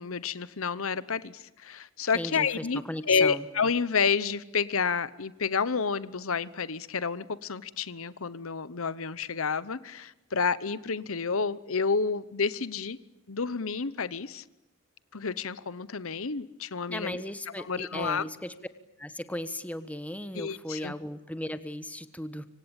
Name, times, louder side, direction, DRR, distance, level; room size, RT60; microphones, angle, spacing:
voice 1, 0.0-2.8 3.1-13.0 13.3-14.4 15.1-17.2 17.6-18.3 20.3-20.9, left 5 dB, 65° left, 17 dB, 1.0 m, -29 dB
voice 2, 2.1-3.4 16.9-18.5 19.0-22.5, left 1 dB, 5° left, 12 dB, 1.3 m, -36 dB
26.5 x 25.5 x 9.0 m, 0.98 s
head